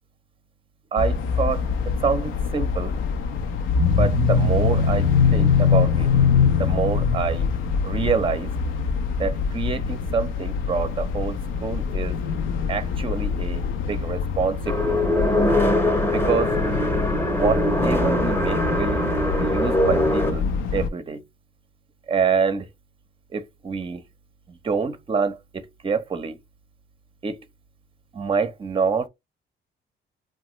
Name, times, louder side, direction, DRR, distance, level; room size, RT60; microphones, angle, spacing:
voice 1, 0.9-1.7 2.0-2.9 3.9-6.1 6.6-7.5 7.8-8.5 9.2-12.2 12.7-13.6 13.9-14.9 16.1-16.6 17.3-19.0 19.4-21.2 22.1-22.7 23.3-24.0 24.5-26.4 27.2-27.4 28.1-29.1, right 5 dB, 25° right, 0.5 m, -26 dB
sound 1, 1.0-20.9, left 5 dB, 85° left, 0.5 m, -24 dB
sound 2, 14.7-20.3, left 1 dB, 10° left, 0.7 m, -22 dB
2.9 x 2.2 x 2.9 m
cardioid pair, 90°, 20 cm